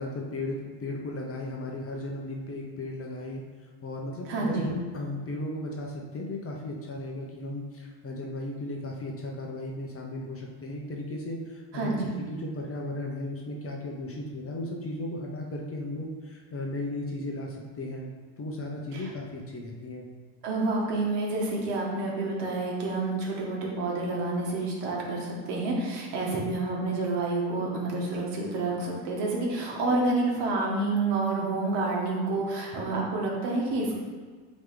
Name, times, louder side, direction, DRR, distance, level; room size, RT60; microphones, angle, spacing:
voice 1, 0.0-3.4 3.8-18.1 18.4-20.0 29.7-29.9, left 1 dB, 30° left, -1 dB, 0.8 m, -35 dB
voice 2, 4.3-4.7 11.7-12.1 18.9-19.1 20.4-34.0, right 2 dB, 55° right, -2 dB, 1.6 m, -29 dB
8.6 x 3.2 x 3.8 m, 1.5 s
cardioid pair, 135°, 49 cm